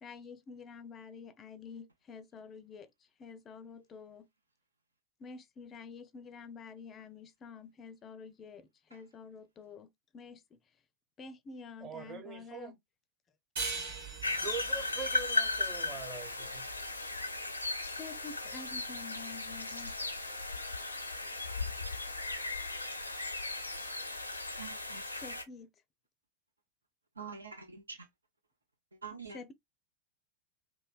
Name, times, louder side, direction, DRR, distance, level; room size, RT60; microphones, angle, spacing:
voice 1, 0.0-2.9 3.2-4.3 5.2-10.6 11.2-12.8 17.8-20.0 25.2-25.7 29.3-29.5, left 5 dB, 25° left, 0.4 m, -48 dB
voice 2, 11.8-12.7 14.4-16.6, right 4 dB, 25° right, 0.9 m, -42 dB
sound 1, 13.6-16.7, right 4 dB, 55° right, 1.1 m, -41 dB
sound 2, 14.2-25.4, left 3 dB, 85° left, 0.4 m, -36 dB
voice 3, 24.6-25.1 27.2-28.1 28.9-29.4, right 5 dB, 75° right, 0.6 m, -46 dB
3.2 x 2.1 x 2.3 m
figure-of-eight pair, 90°, 0 cm